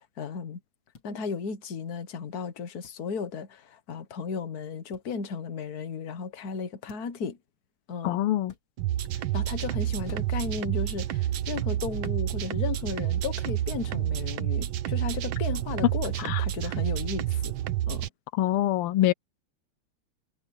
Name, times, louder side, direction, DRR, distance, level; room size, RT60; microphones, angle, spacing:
voice 1, 0.2-0.6 1.0-7.4 7.9-8.2 9.1-17.6 17.9-18.1, left 5 dB, 45° left, 1.7 m, -35 dB
sound 1, 0.9-1.1 2.8-3.0 4.9-5.1 6.9-7.2 8.4-8.6 10.1-10.5 12.0-12.2 13.5-13.7 15.5-15.8, left 3 dB, 65° left, 4.0 m, -51 dB
voice 2, 8.0-8.5 16.2-16.4 18.4-19.1, left 13 dB, 85° left, 1.6 m, -24 dB
sound 2, 8.8-18.1, right 13 dB, 70° right, 1.7 m, -29 dB
omnidirectional pair, 2.4 m